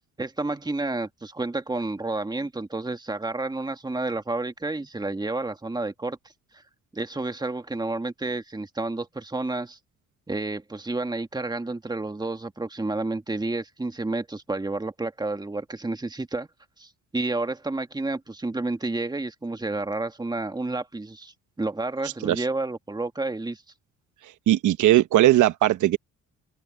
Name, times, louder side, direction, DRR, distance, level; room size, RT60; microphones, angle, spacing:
voice 1, 0.2-6.2 6.9-9.8 10.3-16.5 16.8-23.6, right 2 dB, 15° right, 1.8 m, -30 dB
voice 2, 24.5-26.0, right 14 dB, 80° right, 1.1 m, -19 dB
cardioid pair, 90°, 30 cm